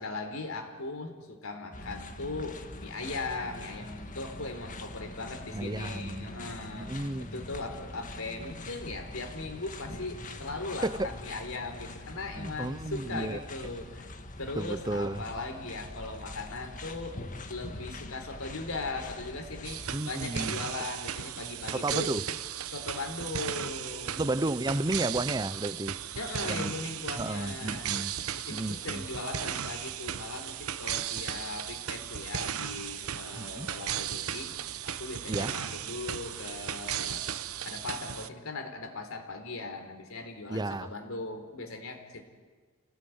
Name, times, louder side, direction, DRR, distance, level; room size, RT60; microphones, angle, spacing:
voice 1, 0.0-6.9 7.2-14.1 14.4-17.2 17.5-22.1 22.7-24.3 26.2-27.9 28.4-34.5 34.8-37.3 37.6-42.2, left 3 dB, 70° left, 4.0 m, -39 dB
sound 1, 1.7-20.0, left 2 dB, 35° left, 1.9 m, -43 dB
voice 2, 5.5-6.3 6.8-7.3 10.8-11.1 12.4-13.4 14.6-15.2 19.9-20.6 21.7-22.2 24.1-26.0 26.4-26.8 27.2-28.1 28.5-29.0 33.4-33.7 35.3-35.5 40.5-40.9, right 2 dB, 20° right, 0.7 m, -32 dB
sound 2, 19.6-38.3, right 9 dB, 80° right, 1.0 m, -36 dB
29.0 x 18.0 x 9.5 m
head